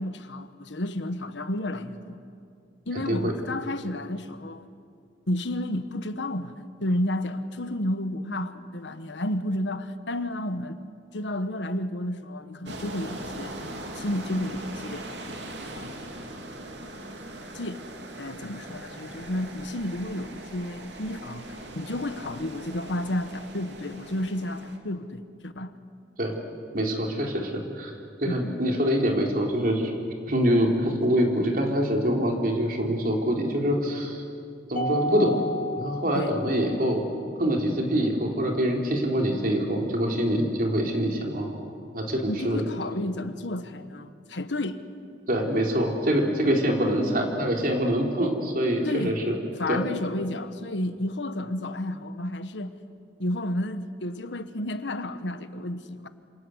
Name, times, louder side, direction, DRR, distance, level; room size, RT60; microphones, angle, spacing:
voice 1, 0.0-2.2 2.9-4.6 5.3-6.5 6.8-10.8 11.1-13.6 14.0-15.1 15.7-16.0 17.5-17.9 18.2-25.7 28.2-28.6 36.1-36.4 42.3-44.8 48.8-49.2 49.6-52.7 53.2-56.1, left 1 dB, 85° left, 1.3 m, -31 dB
voice 2, 2.9-3.3 26.2-26.4 26.7-27.9 28.2-29.9 30.3-34.2 34.7-35.4 35.8-37.1 37.4-42.6 45.3-49.4 49.7-49.9, equal, 50° right, 4.0 m, -25 dB
sound 1, 12.7-24.8, right 1 dB, 75° right, 3.0 m, -40 dB
Mallet percussion, 34.8-37.2, equal, 45° left, 1.6 m, -32 dB
27.5 x 27.0 x 8.1 m
head